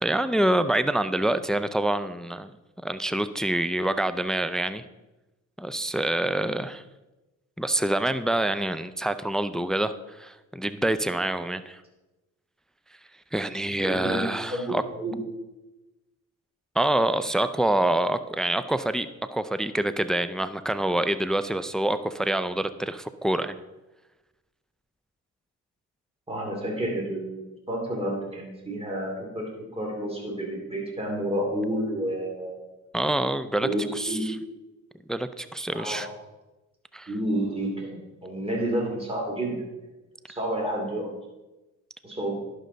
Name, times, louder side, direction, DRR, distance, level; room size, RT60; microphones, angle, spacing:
voice 1, 0.0-2.5 2.8-4.8 5.6-6.8 7.6-11.8 13.3-14.8 16.8-23.6 32.9-34.4 35.1-36.1 36.9-37.1, right 1 dB, ahead, 12 dB, 0.3 m, -26 dB
voice 2, 13.8-14.2 14.5-15.2 26.3-32.6 33.6-34.4 35.7-36.1 37.1-39.6 40.3-41.1 42.0-42.3, right 1 dB, 20° right, -1 dB, 2.6 m, -30 dB
11.0 x 6.4 x 3.9 m, 1.1 s
cardioid pair, 90°, 30 cm